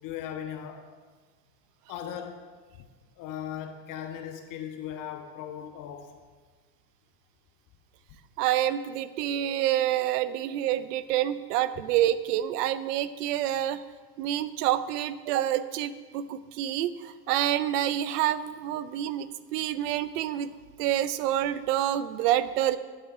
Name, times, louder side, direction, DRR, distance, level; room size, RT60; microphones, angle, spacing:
voice 1, 0.0-1.0 1.9-2.4 3.2-6.1, left 9 dB, 40° left, 6 dB, 0.8 m, -38 dB
voice 2, 8.4-13.8 14.2-20.5 20.8-22.8, right 12 dB, 70° right, 15 dB, 0.6 m, -27 dB
9.3 x 5.6 x 4.8 m, 1.4 s
hypercardioid pair, 110°, 50 cm